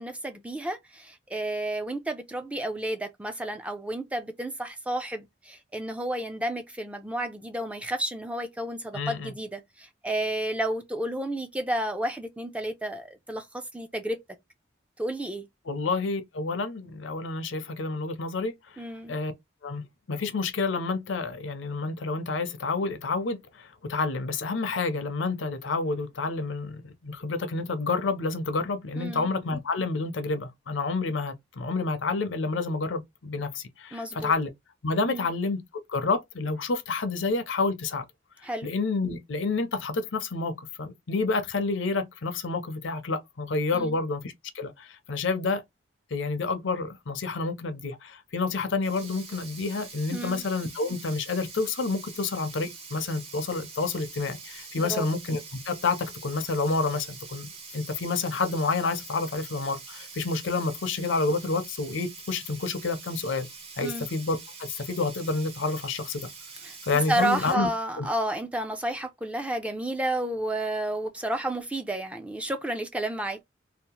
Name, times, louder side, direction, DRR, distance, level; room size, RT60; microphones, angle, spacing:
voice 1, 0.0-14.2 15.0-15.5 18.8-19.2 29.0-29.3 33.9-34.3 35.1-35.3 38.4-38.7 43.7-44.0 50.1-50.4 54.8-55.1 63.8-64.1 66.6-73.4, right 1 dB, 5° right, 0.4 m, -31 dB
voice 2, 8.9-9.3 15.7-18.8 19.1-19.3 19.6-34.5 34.8-35.6 35.9-38.1 38.6-45.6 46.1-63.5 63.8-66.3 66.8-67.7 68.0-68.1, left 3 dB, 75° left, 0.6 m, -29 dB
Sink (filling or washing), 48.8-67.5, right 4 dB, 35° right, 0.8 m, -45 dB
2.7 x 2.0 x 2.8 m
head